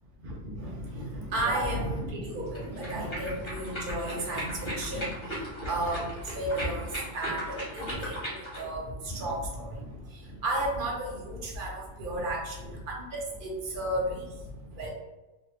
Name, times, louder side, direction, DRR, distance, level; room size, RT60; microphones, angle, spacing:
voice 1, 0.2-14.5 14.7-14.9, right 1 dB, 55° right, -2 dB, 0.9 m, -33 dB
sound 1, 2.5-8.7, right 1 dB, 25° left, 1.1 m, -37 dB
3.0 x 2.1 x 3.1 m, 1.1 s
omnidirectional pair, 1.2 m